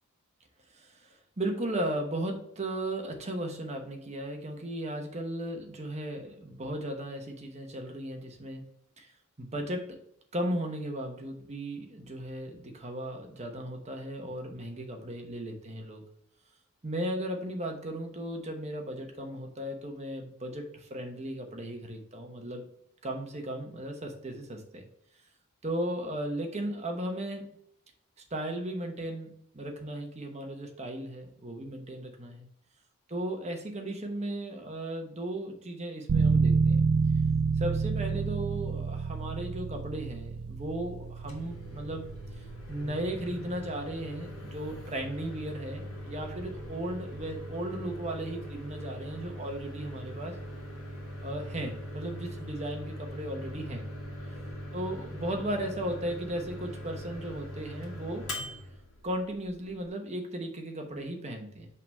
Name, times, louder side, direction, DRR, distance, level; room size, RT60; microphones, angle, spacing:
voice 1, 1.4-8.6 9.0-9.1 9.4-10.0 10.3-16.0 16.8-22.6 23.0-24.8 25.6-27.4 28.3-32.5 33.1-36.8 37.6-42.1 42.7-50.3 51.2-53.8 54.7-58.2 59.0-61.7, right 1 dB, 30° right, 3 dB, 1.0 m, -36 dB
sound 1, 36.1-46.6, right 5 dB, 85° right, 0.5 m, -30 dB
Microwave oven, 41.1-59.9, equal, 75° left, 1.8 m, -41 dB
5.6 x 3.5 x 5.3 m, 0.73 s
head